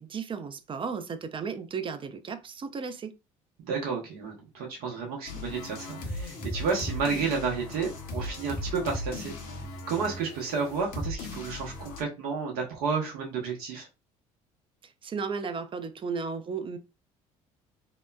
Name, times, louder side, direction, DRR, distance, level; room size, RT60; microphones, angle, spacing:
voice 1, 0.0-3.1 14.8-16.8, right 5 dB, 30° right, 0.5 m, -34 dB
voice 2, 3.6-9.3 9.9-13.9, right 5 dB, 65° right, 0.9 m, -31 dB
sound 1, 5.3-12.0, left 2 dB, 65° left, 0.8 m, -37 dB
2.9 x 2.1 x 2.2 m
hypercardioid pair, 60°, 17 cm